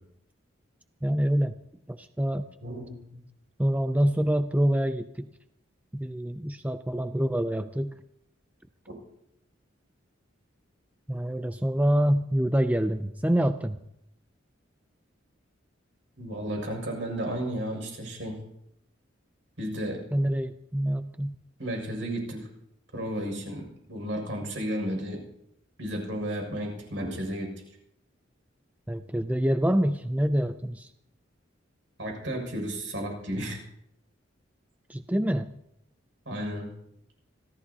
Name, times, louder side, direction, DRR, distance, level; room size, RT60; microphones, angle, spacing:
voice 1, 1.0-1.6 1.9-2.5 3.6-5.3 5.9-8.0 11.1-13.8 20.1-21.3 28.9-30.9 34.9-35.5, equal, 10° right, 9 dB, 0.5 m, -26 dB
voice 2, 2.6-3.0 16.2-18.4 19.6-20.0 21.6-22.4 22.9-25.2 25.8-27.5 32.0-33.6 36.2-36.7, equal, 70° right, 1 dB, 6.6 m, -33 dB
26.0 x 16.5 x 2.9 m, 0.77 s
head